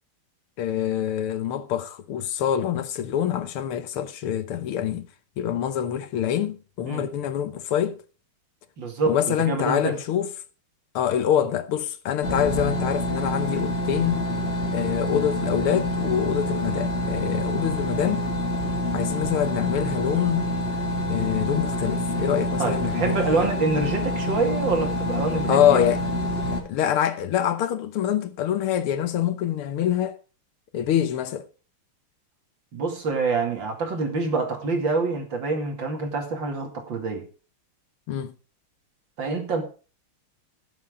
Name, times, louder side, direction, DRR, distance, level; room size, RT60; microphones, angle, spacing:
voice 1, 0.6-5.1 5.4-8.0 9.1-10.3 11.0-14.3 14.7-18.3 18.9-20.5 21.1-23.5 25.5-26.2 26.7-30.2 30.7-31.5 38.1-38.3, left 10 dB, 85° left, 1.9 m, -25 dB
voice 2, 8.8-9.2 9.4-10.0 22.6-25.8 32.7-37.3 39.2-39.6, right 3 dB, 60° right, 3.0 m, -26 dB
sound 1, 12.2-26.6, left 1 dB, 25° left, 3.0 m, -27 dB
16.5 x 7.4 x 3.6 m
omnidirectional pair, 2.3 m